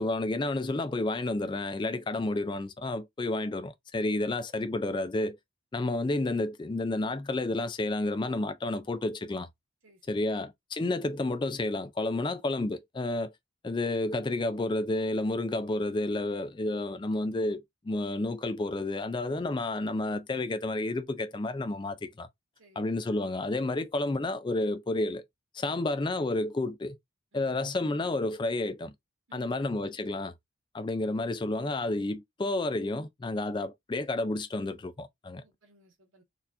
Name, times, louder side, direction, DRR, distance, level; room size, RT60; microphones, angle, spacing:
voice 1, 0.0-5.4 5.7-9.5 10.1-13.3 13.6-22.3 22.8-25.3 25.5-27.0 27.3-28.9 29.3-30.3 30.7-35.4, left 2 dB, 20° left, 0.3 m, -30 dB
voice 2, 9.8-10.3 22.6-22.9 25.6-25.9 27.3-27.6 29.3-29.7 35.4-36.2, right 1 dB, 75° right, 1.8 m, -61 dB
4.1 x 2.7 x 2.6 m
head